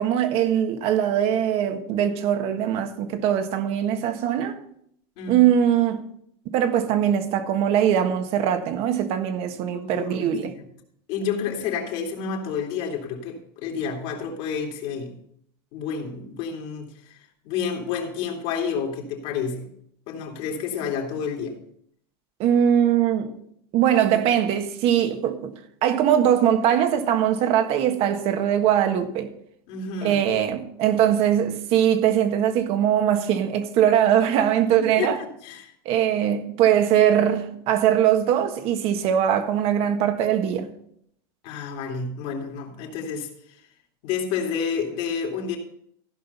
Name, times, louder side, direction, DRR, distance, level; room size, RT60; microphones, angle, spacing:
voice 1, 0.0-4.6 5.3-6.0 6.4-10.5 22.4-23.3 23.7-25.5 25.8-29.3 30.0-35.2 35.8-40.7, right 10 dB, 50° right, 1.5 m, -21 dB
voice 2, 9.7-10.6 11.1-15.1 15.7-19.7 20.1-21.6 29.7-30.2 34.8-35.7 41.4-43.6 44.0-45.6, left 6 dB, 60° left, 2.8 m, -30 dB
15.0 x 5.6 x 5.6 m
supercardioid pair, 125°, 13 cm